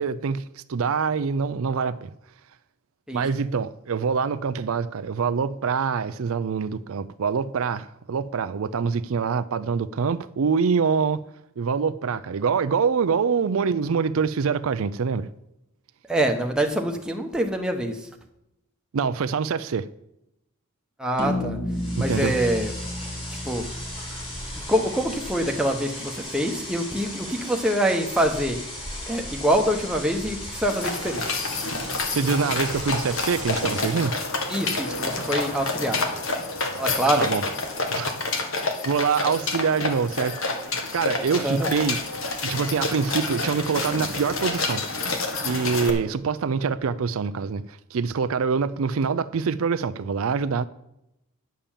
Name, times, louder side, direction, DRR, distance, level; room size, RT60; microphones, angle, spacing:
voice 1, 0.0-2.1 3.1-11.2 11.6-15.3 18.9-19.9 22.0-22.3 32.1-34.2 37.2-37.4 37.9-38.1 38.8-40.4 40.9-42.0 42.4-44.8 45.4-50.7, right 5 dB, 70° right, 0.4 m, -25 dB
voice 2, 16.1-17.9 21.0-21.6 22.0-22.7 23.4-23.6 24.7-28.6 29.1-31.2 34.5-36.0 36.8-37.3 41.4-41.7, right 1 dB, 5° right, 1.0 m, -25 dB
sound 1, 21.2-25.7, left 1 dB, 45° left, 2.2 m, -32 dB
sound 2, 21.7-34.2, left 1 dB, 25° left, 3.1 m, -37 dB
sound 3, 30.7-45.9, left 3 dB, 65° left, 1.6 m, -28 dB
10.0 x 6.9 x 7.3 m
head